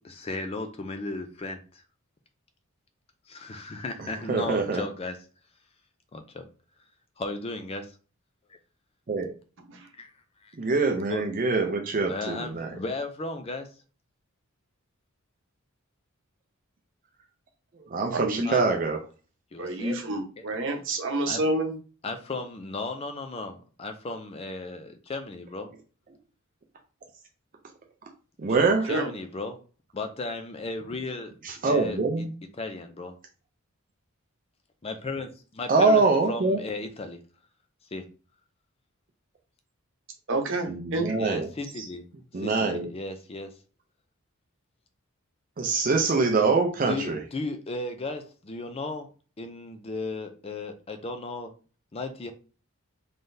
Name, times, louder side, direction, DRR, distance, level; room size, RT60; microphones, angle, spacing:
voice 1, 0.0-1.8 3.3-5.2 6.1-6.5 7.2-8.0 8.5-8.6 10.0-10.1 10.4-10.5 11.1-11.2 12.1-13.7 18.4-18.6 19.5-20.0 20.4-20.5 21.3-21.4 22.0-25.7 28.5-28.6 28.9-29.6 29.9-31.3 31.7-32.3 32.6-33.1 34.8-37.2 37.9-38.1 41.2-42.0 42.3-43.5 46.9-49.1 49.4-51.5 51.9-52.3, left 3 dB, 25° left, 7 dB, 0.4 m, -35 dB
voice 2, 4.3-4.8 9.1-9.3 10.6-12.7 17.9-19.0 28.4-28.9 31.4-32.3 35.7-36.6 40.7-41.5 41.8-41.9 42.3-42.9 45.6-47.2, right 3 dB, 40° right, 3 dB, 0.5 m, -24 dB
voice 3, 18.1-18.6 19.6-21.7 28.9-29.1 40.3-41.2, right 2 dB, 60° right, 3 dB, 0.9 m, -28 dB
3.8 x 3.2 x 2.6 m, 0.37 s
head